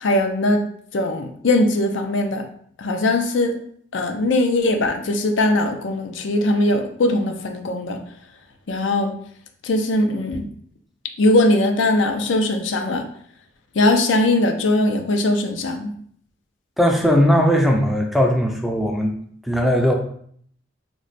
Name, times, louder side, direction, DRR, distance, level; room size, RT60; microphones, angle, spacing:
voice 1, 0.0-0.6 0.9-2.4 2.8-3.5 3.9-8.0 8.7-9.1 9.6-10.5 11.2-13.0 13.8-15.9, left 1 dB, 85° left, 5 dB, 0.5 m, -20 dB
voice 2, 16.8-19.1 19.4-19.9, equal, ahead, 1 dB, 0.3 m, -18 dB
3.0 x 2.1 x 4.0 m, 0.62 s
head